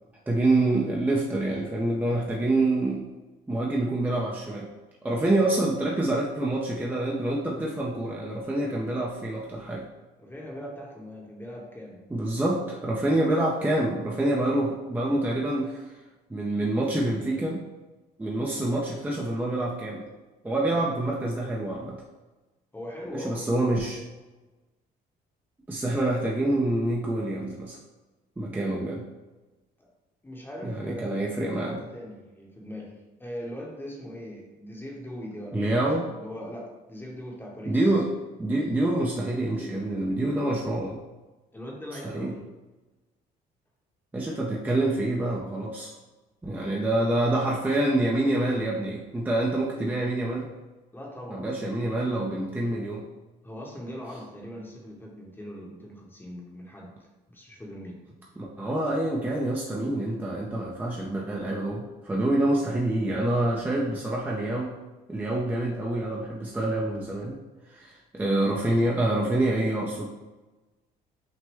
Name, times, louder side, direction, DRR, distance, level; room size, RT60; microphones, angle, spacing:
voice 1, 0.3-3.0 3.5-4.7 5.0-9.9 12.1-15.9 16.3-17.6 18.2-20.0 20.4-22.0 23.1-24.0 25.7-27.8 28.4-29.0 30.6-31.8 35.5-36.1 37.7-38.1 38.4-41.0 42.0-42.3 44.1-45.9 46.4-50.5 51.3-53.1 58.4-64.7 65.1-67.3 67.7-70.0, right 1 dB, 10° right, -3 dB, 0.5 m, -26 dB
voice 2, 10.2-12.0 20.7-20.9 22.7-23.5 29.8-29.9 30.2-38.0 41.5-42.5 46.6-46.8 50.9-51.5 53.4-58.0, equal, 10° left, -2 dB, 0.9 m, -41 dB
6.0 x 2.2 x 3.4 m, 1.1 s
cardioid pair, 110°, 17 cm